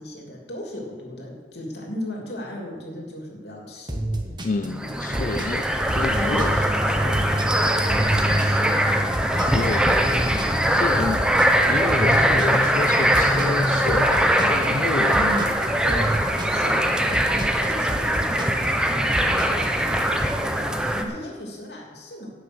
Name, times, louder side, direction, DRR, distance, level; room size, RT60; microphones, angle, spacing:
voice 1, 0.0-4.0 4.8-5.4 6.1-8.8 10.3-10.7 15.1-15.6 15.8-16.1 16.4-22.3, equal, 70° left, 0 dB, 2.9 m, -36 dB
sound 1, 3.9-19.8, right 1 dB, 25° right, 1.4 m, -32 dB
voice 2, 4.4-5.7 5.9-6.6 9.5-10.1 10.7-15.2, left 3 dB, 45° left, 8 dB, 0.4 m, -29 dB
sound 2, 4.8-21.0, equal, 5° right, 0.8 m, -21 dB
17.0 x 6.6 x 6.2 m, 1.5 s
head